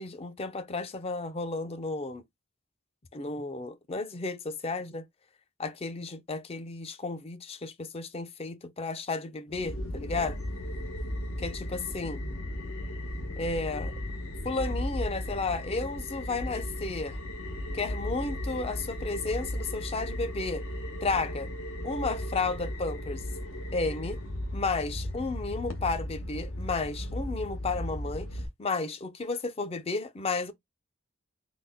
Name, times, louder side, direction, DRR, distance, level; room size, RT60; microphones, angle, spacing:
voice 1, 0.0-2.2 3.1-5.0 5.6-10.4 11.4-12.2 13.4-14.0 14.4-17.2 17.7-20.6 21.0-21.5 21.8-23.2 23.7-24.2 24.5-30.5, left 3 dB, 30° left, 0.4 m, -33 dB
sound 1, 9.5-28.5, left 1 dB, 80° left, 0.9 m, -36 dB
3.9 x 2.0 x 3.4 m
head